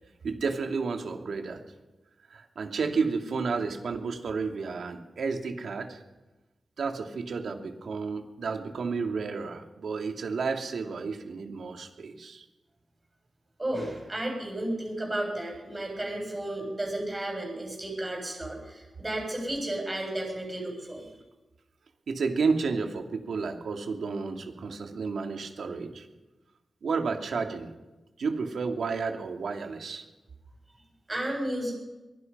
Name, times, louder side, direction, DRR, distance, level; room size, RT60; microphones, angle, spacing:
voice 1, 0.2-1.6 2.3-6.0 6.8-12.4 22.1-26.1 26.8-27.7 28.2-30.0, right 4 dB, 70° right, 4 dB, 2.7 m, -31 dB
voice 2, 13.6-21.1 31.1-31.7, right 1 dB, 20° right, 0 dB, 7.3 m, -33 dB
23.5 x 23.0 x 5.6 m, 1.1 s
wide cardioid pair, 145°, 0 cm